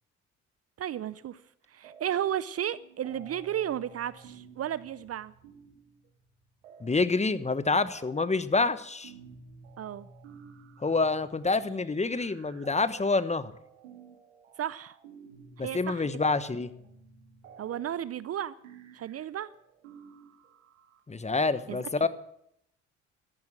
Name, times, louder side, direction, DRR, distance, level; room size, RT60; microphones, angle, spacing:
voice 1, 0.8-1.4 1.7-5.3 9.8-10.1 14.6-14.9 15.6-16.0 17.6-18.6 18.9-19.5 21.7-21.8, right 10 dB, 40° right, 0.6 m, -33 dB
sound 1, 1.8-2.5 2.7-21.0, right 5 dB, 85° right, 1.8 m, -53 dB
voice 2, 6.8-9.1 10.8-13.5 15.6-16.7 21.1-22.1, left 3 dB, 20° left, 1.1 m, -27 dB
13.5 x 11.0 x 7.6 m
hypercardioid pair, 55°, 36 cm